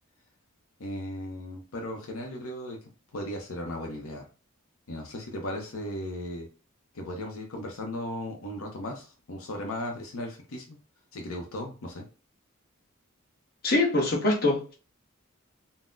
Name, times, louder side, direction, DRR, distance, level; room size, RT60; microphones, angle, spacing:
voice 1, 0.8-2.8 3.1-4.2 4.9-6.5 6.9-10.8 11.1-12.0, left 1 dB, 80° left, 0.7 m, -36 dB
voice 2, 13.6-14.7, left 2 dB, 45° left, 1.0 m, -24 dB
3.9 x 2.1 x 2.5 m
head